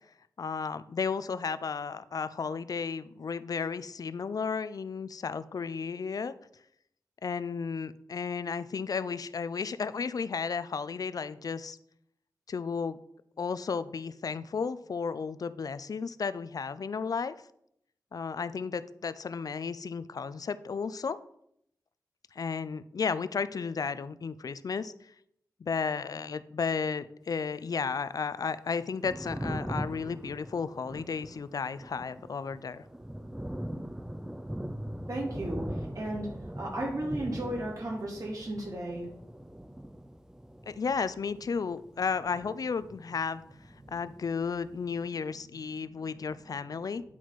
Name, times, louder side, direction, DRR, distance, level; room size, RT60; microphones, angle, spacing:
voice 1, 0.4-6.4 7.2-11.8 12.5-13.0 13.4-17.4 18.1-21.2 22.3-24.9 25.6-32.8 40.7-43.4 43.9-47.0, left 5 dB, 65° left, 15 dB, 0.4 m, -33 dB
Thunder, 28.8-43.3 43.5-44.8, right 1 dB, 10° right, 0.5 m, -41 dB
voice 2, 35.1-36.3 36.6-39.1, right 1 dB, 60° right, -4 dB, 3.5 m, -34 dB
9.8 x 4.2 x 4.7 m, 0.73 s
cardioid pair, 55°, 7 cm